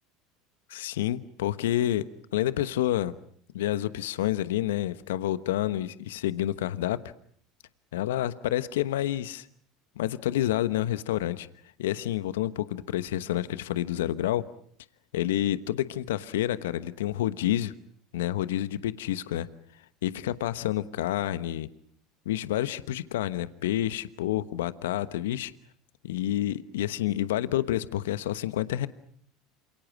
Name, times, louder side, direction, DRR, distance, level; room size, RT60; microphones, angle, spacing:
voice 1, 0.7-2.0 2.3-3.1 3.5-7.0 7.9-9.5 10.0-11.5 11.8-14.4 15.1-17.7 18.1-19.5 20.0-21.7 22.2-25.5 26.0-28.9, left 13 dB, 75° left, 14 dB, 1.1 m, -28 dB
28.5 x 27.5 x 6.2 m, 0.62 s
hypercardioid pair, 75°, 0 cm